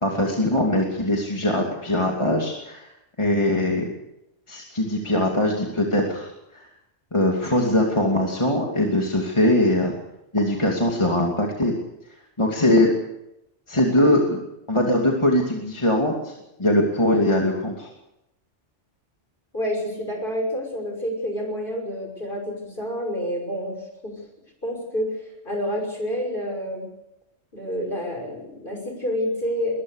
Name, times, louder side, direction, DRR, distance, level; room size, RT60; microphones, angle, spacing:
voice 1, 0.0-2.9 3.2-3.9 4.5-6.6 7.1-9.9 10.3-11.7 12.4-12.9 13.7-14.4 14.7-17.9, left 1 dB, 25° left, -1 dB, 2.8 m, -21 dB
voice 2, 19.5-24.2 24.6-25.1 25.4-26.9 27.5-29.8, equal, 45° left, 3 dB, 6.3 m, -28 dB
22.0 x 20.5 x 6.6 m, 0.84 s
omnidirectional pair, 1.2 m